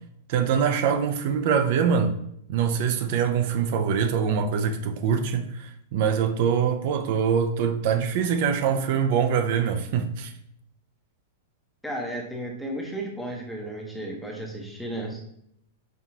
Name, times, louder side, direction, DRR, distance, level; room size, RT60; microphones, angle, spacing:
voice 1, 0.3-2.2 2.5-10.3, right 7 dB, 50° right, 0.4 m, -24 dB
voice 2, 11.8-15.3, right 1 dB, ahead, 0.7 m, -34 dB
5.4 x 2.4 x 2.8 m
supercardioid pair, 155°, 0 cm